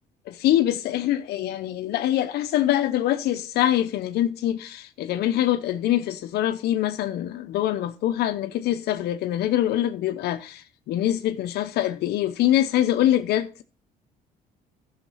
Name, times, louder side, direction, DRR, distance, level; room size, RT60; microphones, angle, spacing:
voice 1, 0.3-13.6, left 12 dB, 75° left, 0.7 m, -24 dB
12.0 x 6.5 x 5.6 m
cardioid pair, 110°, 17 cm